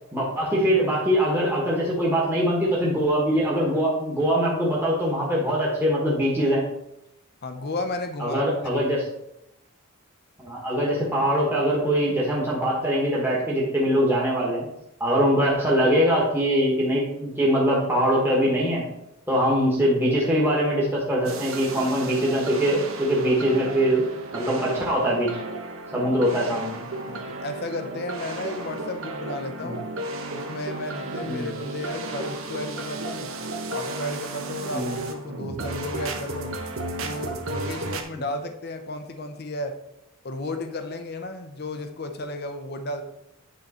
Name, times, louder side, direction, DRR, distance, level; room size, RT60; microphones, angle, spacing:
voice 1, 0.1-6.6 8.2-9.0 10.4-14.7 15.0-18.8 19.3-24.1 24.3-25.3 25.9-26.8 29.6-29.7 31.2-31.5 34.7-35.0, equal, 10° right, -5 dB, 1.3 m, -22 dB
voice 2, 7.4-8.8 27.1-29.8 30.3-33.3 33.7-36.5 37.0-39.7 40.2-43.0, left 2 dB, 45° left, 7 dB, 0.6 m, -33 dB
sound 1, 21.2-38.0, right 2 dB, 65° right, 0.8 m, -33 dB
9.3 x 3.8 x 4.2 m, 0.84 s
head